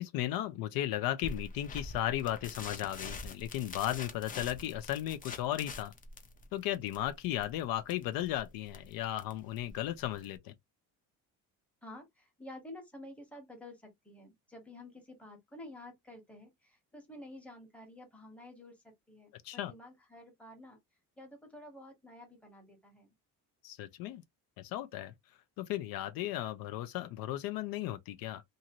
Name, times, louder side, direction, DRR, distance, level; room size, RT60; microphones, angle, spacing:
voice 1, 0.0-5.9 6.5-10.5 19.4-19.7 23.6-24.2 24.6-25.1 25.6-28.4, left 13 dB, 75° left, 0.6 m, -35 dB
sound 1, 1.2-10.4, left 3 dB, 25° left, 0.6 m, -46 dB
voice 2, 11.8-20.8 21.2-23.1, left 1 dB, 5° left, 1.0 m, -51 dB
2.7 x 2.6 x 2.9 m
cardioid pair, 145°, 36 cm